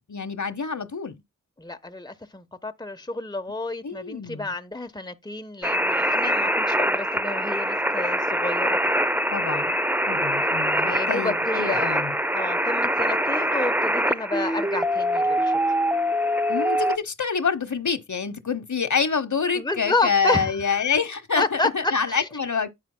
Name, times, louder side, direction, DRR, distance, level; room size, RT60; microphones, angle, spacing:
voice 1, 0.1-1.2 3.8-4.6 9.3-9.8 10.1-12.2 16.5-22.7, left 5 dB, 65° left, 1.1 m, -27 dB
voice 2, 1.6-8.8 10.8-12.0 12.3-15.5 19.6-20.9 21.4-22.3, left 2 dB, 15° left, 1.0 m, -30 dB
sound 1, 5.6-17.0, equal, 5° right, 0.6 m, -24 dB
9.8 x 8.3 x 2.2 m
cardioid pair, 50°, 32 cm